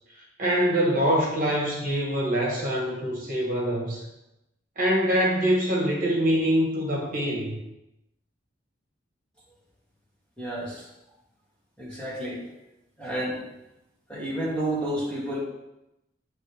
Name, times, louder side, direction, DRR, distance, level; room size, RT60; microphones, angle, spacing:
voice 1, 0.1-4.0 4.8-7.6, equal, 50° right, -3 dB, 1.4 m, -24 dB
voice 2, 10.4-10.9 11.8-12.4 13.0-13.4 14.1-15.4, right 1 dB, 5° left, -8 dB, 2.0 m, -30 dB
9.5 x 3.3 x 3.4 m, 0.92 s
head